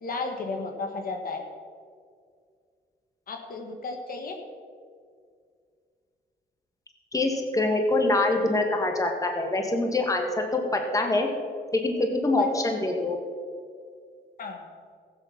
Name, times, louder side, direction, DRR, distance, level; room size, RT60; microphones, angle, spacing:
voice 1, 0.0-1.4 3.3-4.4 12.4-12.5 14.4-14.6, left 3 dB, 60° left, 3 dB, 1.7 m, -33 dB
voice 2, 7.1-11.3 11.8-13.2, left 2 dB, 20° left, 3 dB, 1.8 m, -25 dB
15.0 x 7.9 x 5.9 m, 2.1 s
cardioid pair, 100°, 17 cm